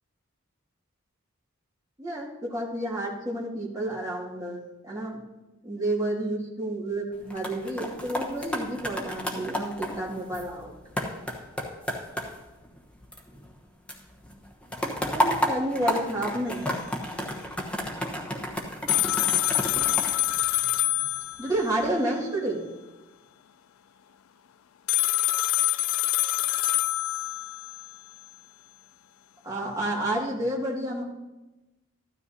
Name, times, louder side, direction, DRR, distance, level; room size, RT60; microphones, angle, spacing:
voice 1, 2.0-5.2 5.6-10.7 15.1-16.7 21.4-22.7 29.4-31.0, right 1 dB, 15° right, -5 dB, 2.1 m, -30 dB
sound 1, 7.1-13.6 13.9-21.1 21.6-21.9, equal, 5° left, 1.1 m, -32 dB
sound 2, 18.9-21.7 24.9-27.9, left 17 dB, 85° left, 0.4 m, -25 dB
14.0 x 12.5 x 2.8 m, 1.1 s
head